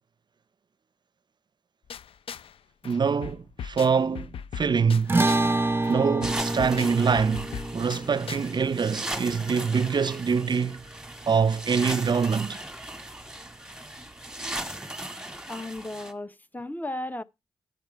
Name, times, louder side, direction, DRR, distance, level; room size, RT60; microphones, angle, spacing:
sound 1, 1.9-2.6 2.8-5.6 5.8-8.5, left 7 dB, 70° left, 0.4 m, -40 dB
voice 1, 2.8-5.1 5.9-10.8 11.3-12.6, right 6 dB, 50° right, 0.5 m, -25 dB
sound 2, 5.1-11.6, right 2 dB, 25° right, 0.9 m, -29 dB
sound 3, 6.2-16.1, right 1 dB, 5° right, 1.7 m, -38 dB
voice 2, 15.5-17.2, left 1 dB, 20° left, 0.8 m, -35 dB
10.5 x 7.0 x 4.5 m
cardioid pair, 55°, 10 cm